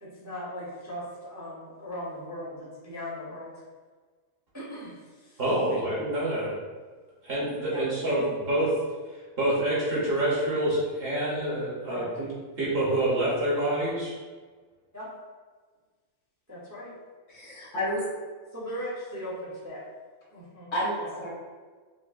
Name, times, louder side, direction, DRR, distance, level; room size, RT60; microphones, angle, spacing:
voice 1, 0.0-3.6 4.5-5.4 5.7-5.8 7.6-7.8 11.8-12.1 14.9-15.1 16.5-16.9 18.5-19.8 20.3-21.0, equal, 15° right, -8 dB, 0.6 m, -39 dB
voice 2, 5.4-6.5 7.2-8.8 9.4-12.3 12.5-14.1, right 1 dB, 45° right, -7 dB, 1.1 m, -27 dB
voice 3, 17.3-18.1 20.7-21.3, equal, 65° left, -5 dB, 1.3 m, -30 dB
5.2 x 2.1 x 2.4 m, 1.4 s
omnidirectional pair, 1.4 m